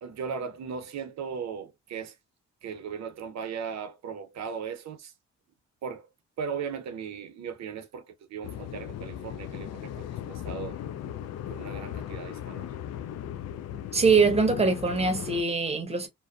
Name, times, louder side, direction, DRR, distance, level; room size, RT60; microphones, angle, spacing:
voice 1, 0.0-2.2 2.6-5.1 5.8-6.1 6.4-10.8 11.5-12.7, right 6 dB, 65° right, 0.8 m, -37 dB
sound 1, 8.4-15.4, left 10 dB, 55° left, 0.4 m, -37 dB
voice 2, 13.9-16.1, right 4 dB, 20° right, 0.9 m, -23 dB
2.5 x 2.2 x 2.3 m
cardioid pair, 90°, 30 cm